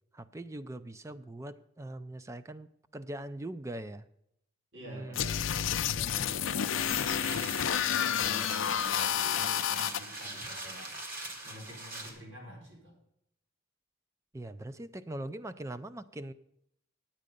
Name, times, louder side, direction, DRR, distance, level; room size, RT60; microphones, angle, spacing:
voice 1, 0.1-4.1 4.9-5.3 14.3-16.3, right 1 dB, 15° right, 12 dB, 0.4 m, -41 dB
voice 2, 4.7-5.4 5.9-7.6 7.9-10.9 11.4-12.9, equal, 75° right, -2 dB, 4.5 m, -48 dB
sound 1, 5.1-10.0, left 9 dB, 85° left, 0.5 m, -30 dB
sound 2, 6.8-12.1, right 2 dB, 50° right, 2.0 m, -42 dB
9.5 x 8.8 x 5.2 m, 0.75 s
head